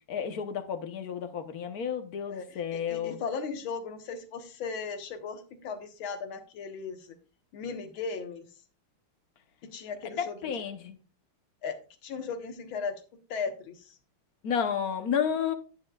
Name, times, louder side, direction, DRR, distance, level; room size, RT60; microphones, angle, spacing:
voice 1, 0.1-3.2 10.2-11.0 14.4-15.5, left 7 dB, 55° left, 1.2 m, -31 dB
voice 2, 2.3-7.2 7.5-8.5 9.6-10.5 11.6-13.0 13.3-14.0, left 5 dB, 70° left, 2.0 m, -37 dB
9.9 x 9.7 x 2.3 m
omnidirectional pair, 2.4 m